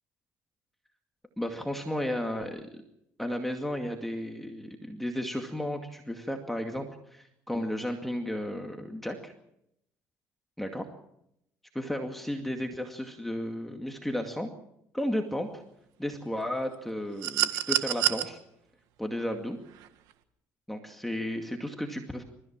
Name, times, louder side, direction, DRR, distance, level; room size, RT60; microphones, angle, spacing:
voice 1, 1.4-2.7 3.2-9.3 10.6-10.8 11.7-14.5 14.9-15.6 16.0-18.4 19.0-19.6 20.7-22.2, left 1 dB, 5° left, 3 dB, 2.2 m, -33 dB
sound 1, 17.2-18.2 19.7-19.9, right 14 dB, 85° right, 1.7 m, -26 dB
28.5 x 14.5 x 7.5 m, 0.79 s
cardioid pair, 100°, 6 cm